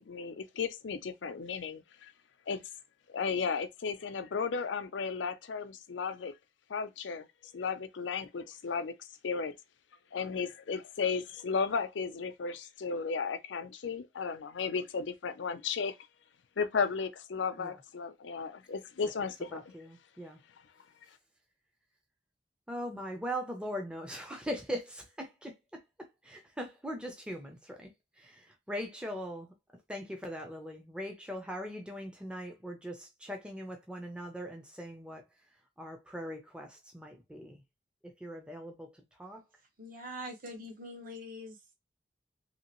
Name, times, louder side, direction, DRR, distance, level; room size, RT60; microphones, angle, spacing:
voice 1, 0.0-2.1 2.5-2.6 3.1-6.3 6.7-7.3 7.5-9.5 10.1-15.9 16.6-19.7, left 5 dB, 85° left, 0.5 m, -34 dB
voice 2, 19.4-20.4 22.7-37.6 38.0-39.4, equal, 5° right, 0.5 m, -41 dB
voice 3, 39.8-41.6, equal, 50° right, 1.1 m, -43 dB
2.9 x 2.8 x 2.9 m
head